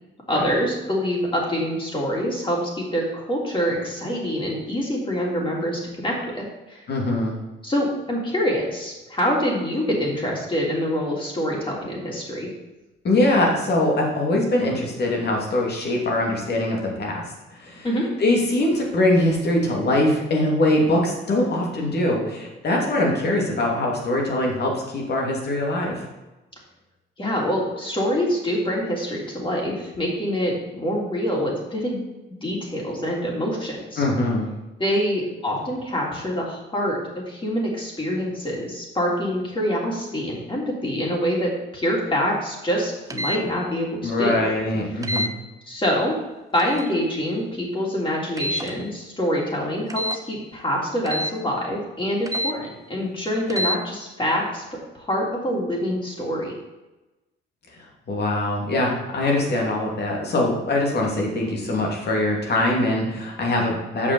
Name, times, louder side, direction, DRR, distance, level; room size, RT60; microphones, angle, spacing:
voice 1, 0.3-6.8 7.6-12.5 17.8-18.0 27.2-32.1 32.4-34.0 34.8-44.5 44.9-45.0 45.7-46.2 46.5-54.6 54.9-56.5, equal, 25° left, -2 dB, 3.2 m, -25 dB
voice 2, 6.9-7.4 13.0-17.2 17.6-17.9 18.2-26.0 34.0-34.5 44.0-45.3 58.1-64.1, left 1 dB, 55° left, -1 dB, 2.7 m, -22 dB
sound 1, 43.1-43.4 45.0-45.3 46.6-46.9 48.4-48.7 49.9-50.2 51.1-51.3 52.3-52.5 53.5-53.8, equal, 15° right, 0.9 m, -27 dB
6.9 x 5.6 x 7.0 m, 1.0 s
cardioid pair, 90°, 20 cm